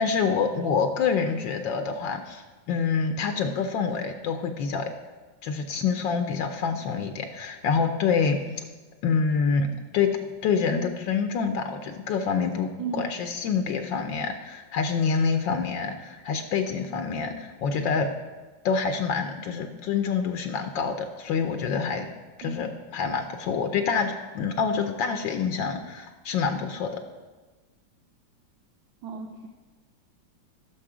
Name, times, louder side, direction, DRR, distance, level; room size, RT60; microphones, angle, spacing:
voice 1, 0.0-4.9 5.4-8.4 9.0-10.2 10.4-18.1 18.6-22.1 22.4-27.0, left 5 dB, 75° left, 6 dB, 1.4 m, -27 dB
voice 2, 12.8-13.3 22.4-22.7 29.0-29.5, right 4 dB, 90° right, 4 dB, 1.5 m, -35 dB
15.0 x 6.8 x 4.9 m, 1.3 s
omnidirectional pair, 2.1 m